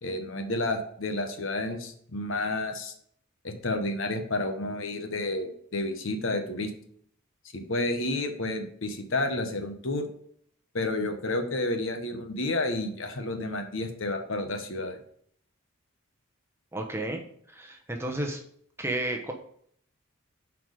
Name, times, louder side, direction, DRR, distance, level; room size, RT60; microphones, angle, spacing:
voice 1, 0.0-2.9 3.4-6.7 7.5-10.1 10.7-15.0, left 2 dB, 60° left, 6 dB, 1.1 m, -30 dB
voice 2, 16.7-18.4 18.8-19.3, right 1 dB, 10° right, 3 dB, 0.9 m, -32 dB
7.9 x 4.7 x 5.0 m, 0.64 s
head